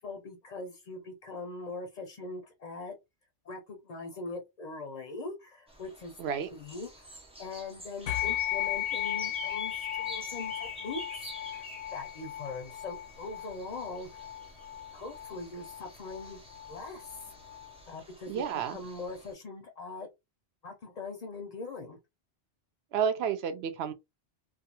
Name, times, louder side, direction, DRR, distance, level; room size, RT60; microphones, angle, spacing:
voice 1, 0.0-2.9 3.4-6.2 6.5-11.0 11.4-14.2 14.9-16.4 16.7-17.0 17.9-18.4 18.7-20.1 20.6-22.0, left 3 dB, 50° left, 0.5 m, -41 dB
sound 1, 5.7-19.3, equal, 10° right, 0.4 m, -49 dB
voice 2, 6.2-6.5 18.3-18.8 22.9-23.9, right 7 dB, 65° right, 0.8 m, -30 dB
sound 2, 8.1-17.8, left 12 dB, 85° left, 0.9 m, -36 dB
2.3 x 2.3 x 2.8 m
omnidirectional pair, 1.2 m